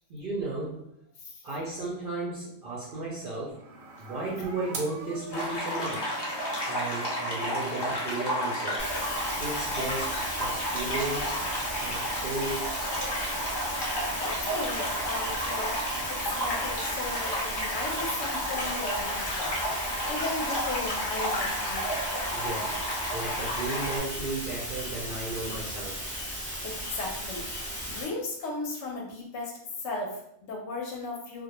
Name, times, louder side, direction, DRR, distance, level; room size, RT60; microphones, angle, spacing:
voice 1, 0.1-0.9 1.4-3.6 4.0-6.2 6.7-8.8 9.4-11.4 11.8-12.7 22.3-22.7 23.1-26.0, right 2 dB, 60° right, -6 dB, 0.5 m, -34 dB
sound 1, 3.5-17.1, right 5 dB, 90° right, 1.0 m, -44 dB
sound 2, 5.3-24.0, equal, 35° left, 0.4 m, -32 dB
sound 3, 8.8-28.0, equal, 15° right, 0.5 m, -36 dB
voice 2, 14.2-15.8 16.1-22.0 26.6-27.5 27.9-29.5 29.8-31.4, left 3 dB, 65° left, -1 dB, 0.8 m, -36 dB
2.3 x 2.1 x 2.8 m, 0.75 s
omnidirectional pair, 1.4 m